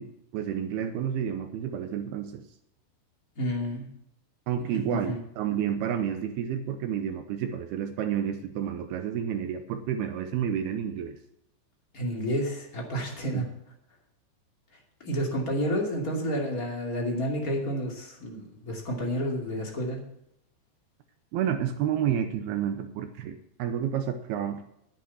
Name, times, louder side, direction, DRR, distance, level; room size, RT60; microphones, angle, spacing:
voice 1, 0.0-2.4 4.5-11.2 13.3-13.4 21.3-24.6, right 9 dB, 85° right, 8 dB, 2.3 m, -30 dB
voice 2, 3.4-3.9 4.6-5.2 11.9-13.5 15.0-20.0, equal, 30° left, -1 dB, 1.9 m, -30 dB
10.5 x 9.5 x 5.6 m, 0.79 s
omnidirectional pair, 5.4 m